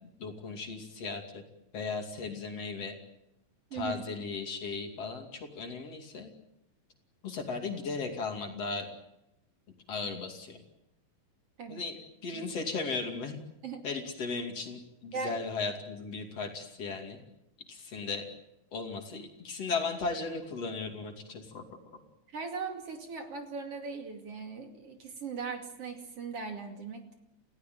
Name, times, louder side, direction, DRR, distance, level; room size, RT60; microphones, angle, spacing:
voice 1, 0.0-1.4 1.7-2.9 3.7-6.3 7.2-8.9 9.9-10.6 11.7-12.0 12.2-13.4 13.8-17.2 17.7-18.2 18.7-21.7, left 4 dB, 45° left, 4 dB, 3.4 m, -36 dB
voice 2, 3.7-4.0 11.6-11.8 12.3-12.4 13.6-13.8 15.1-15.4 22.3-27.1, right 5 dB, 45° right, 4 dB, 3.3 m, -39 dB
29.0 x 16.5 x 9.2 m, 0.87 s
omnidirectional pair, 4.1 m